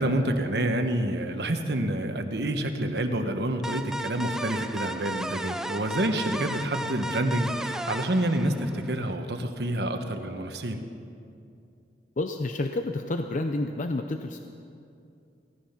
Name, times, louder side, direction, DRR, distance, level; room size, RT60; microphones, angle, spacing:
voice 1, 0.0-10.8, right 1 dB, 65° right, 6 dB, 1.2 m, -28 dB
sound 1, 3.6-9.1, right 1 dB, 5° right, 0.4 m, -34 dB
voice 2, 12.2-14.4, left 2 dB, 45° left, 6 dB, 0.6 m, -29 dB
17.0 x 14.0 x 5.8 m, 2.6 s
head